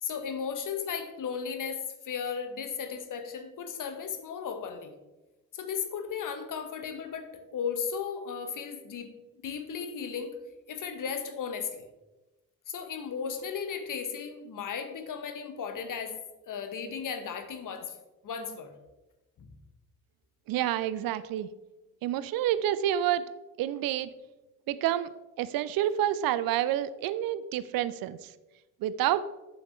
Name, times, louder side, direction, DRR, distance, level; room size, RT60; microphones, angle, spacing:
voice 1, 0.0-4.9 5.5-9.1 9.4-10.4 10.7-11.9 12.7-16.2 16.5-18.0 18.2-18.7 19.4-19.5, left 6 dB, 45° left, 8 dB, 1.3 m, -35 dB
voice 2, 20.5-21.5 22.0-23.3 23.6-24.1 24.7-25.1 25.4-28.3 28.8-29.2, right 12 dB, 50° right, 15 dB, 0.6 m, -28 dB
8.5 x 7.2 x 4.5 m, 1.1 s
figure-of-eight pair, 45°, 46 cm